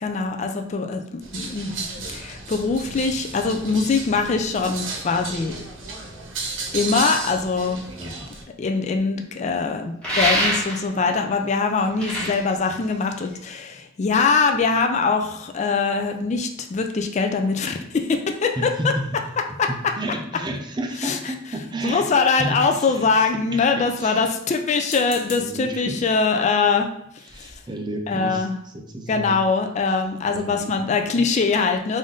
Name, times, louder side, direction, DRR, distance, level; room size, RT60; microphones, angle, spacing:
voice 1, 0.0-1.9 2.1-5.5 6.7-7.8 8.6-18.7 19.6-19.7 21.0-21.2 21.8-26.9 27.4-27.5 28.1-28.6 29.1-32.0, left 4 dB, 35° left, 5 dB, 0.3 m, -22 dB
sound 1, 1.2-8.4, right 3 dB, 70° right, 0.8 m, -33 dB
voice 2, 8.0-8.3 18.6-19.0 19.9-22.0 22.4-23.7 24.0-24.3 25.4-25.9 27.2-29.4 30.2-30.8, right 1 dB, 20° right, 2 dB, 0.5 m, -31 dB
sound 2, 10.0-11.0 11.8-13.5, equal, 5° left, 1.3 m, -24 dB
sound 3, 24.7-25.6 26.4-26.6 27.0-27.1 27.3-27.6, left 2 dB, 70° left, 1.1 m, -41 dB
3.5 x 2.6 x 3.7 m, 0.75 s
head